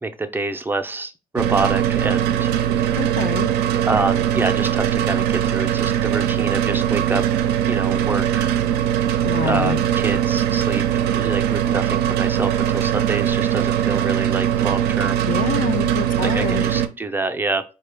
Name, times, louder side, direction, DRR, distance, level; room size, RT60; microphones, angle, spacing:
voice 1, 0.0-3.1 3.7-7.2 7.7-8.5 9.4-15.3 16.2-17.6, right 3 dB, 10° right, 0.4 m, -27 dB
sound 1, 1.4-16.9, right 10 dB, 85° right, 0.4 m, -21 dB
voice 2, 3.0-3.5 9.2-9.9 15.3-16.6, left 8 dB, 55° left, 0.4 m, -26 dB
4.1 x 2.2 x 3.2 m
cardioid pair, 110°, 17 cm